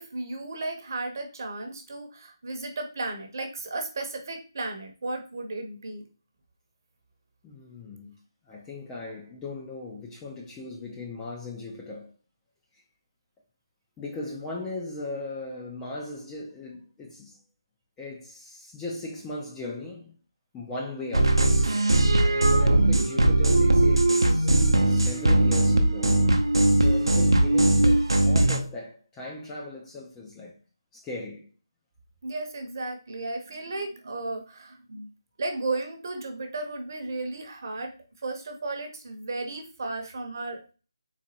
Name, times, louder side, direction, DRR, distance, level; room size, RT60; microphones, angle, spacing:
voice 1, 0.0-6.0 27.1-27.2 32.2-35.1 35.4-37.9 38.2-40.7, right 2 dB, 40° right, 0.7 m, -34 dB
voice 2, 7.4-8.2 8.4-12.1 14.0-17.4 18.0-20.1 20.5-24.6 24.9-26.2 26.4-30.6 30.9-31.5, left 2 dB, 10° left, 0.3 m, -38 dB
sound 1, 21.1-28.6, right 1 dB, 85° right, 0.6 m, -20 dB
3.9 x 2.2 x 2.8 m
figure-of-eight pair, 165°, 3 cm